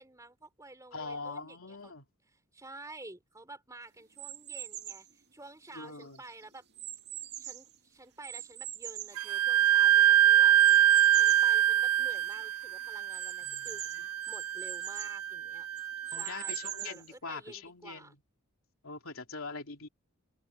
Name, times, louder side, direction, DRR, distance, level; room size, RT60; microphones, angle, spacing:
voice 1, 0.0-1.9 2.3-6.6 7.4-10.8 11.1-13.8 14.3-15.7 16.0-18.2, right 2 dB, 15° right, 4.7 m, -50 dB
voice 2, 0.9-2.0 5.7-6.2 13.4-13.7 13.9-14.1 16.1-18.1 18.8-19.9, left 4 dB, 70° left, 3.3 m, -42 dB
sound 1, 4.1-5.1 5.7-7.7 8.2-9.9 10.6-11.5 12.0-12.1 12.3-12.4 13.1-15.2 15.8-17.1, right 12 dB, 50° right, 2.1 m, -42 dB
Wind instrument woodwind instrument, 9.2-16.6, right 11 dB, 80° right, 0.5 m, -25 dB
open air
head